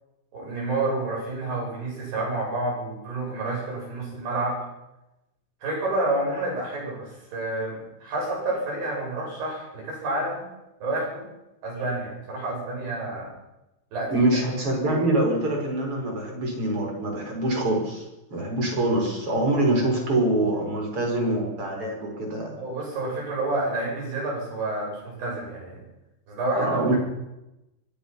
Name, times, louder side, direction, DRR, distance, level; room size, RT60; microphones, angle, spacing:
voice 1, 0.3-4.7 5.6-10.5 10.8-11.3 11.6-13.3 13.9-14.3 22.6-25.8 26.3-26.8, right 2 dB, 90° right, -2 dB, 9.9 m, -29 dB
voice 2, 14.1-22.5 26.5-26.9, right 1 dB, 35° right, 1 dB, 6.6 m, -25 dB
24.5 x 21.5 x 5.9 m, 0.96 s
omnidirectional pair, 4.5 m